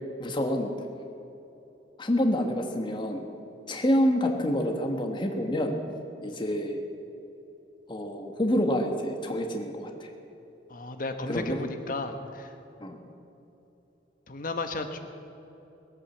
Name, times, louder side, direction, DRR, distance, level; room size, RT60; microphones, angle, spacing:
voice 1, 0.2-0.7 2.0-3.3 3.7-5.8 6.2-6.8 7.9-10.1 11.3-11.6 12.8-13.0, equal, 25° left, 3 dB, 1.4 m, -27 dB
voice 2, 10.7-12.5 14.3-15.0, left 2 dB, 50° left, 6 dB, 1.2 m, -34 dB
20.5 x 8.8 x 7.3 m, 3.0 s
head